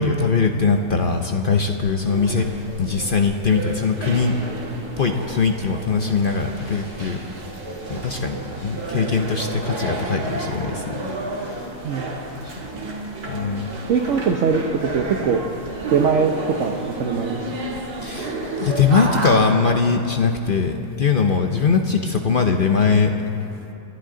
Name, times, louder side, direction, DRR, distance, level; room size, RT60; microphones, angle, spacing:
voice 1, 0.0-2.5 2.8-4.4 5.0-7.2 7.9-8.4 8.6-11.0 12.4-12.5 13.3-13.7 18.0-23.1, left 5 dB, 50° left, 4 dB, 0.6 m, -21 dB
sound 1, 2.1-19.3, right 2 dB, 80° right, 2.6 m, -31 dB
voice 2, 13.9-15.4 15.9-17.4, right 6 dB, 60° right, 4 dB, 1.0 m, -21 dB
28.5 x 11.0 x 3.8 m, 2.8 s
omnidirectional pair, 1.7 m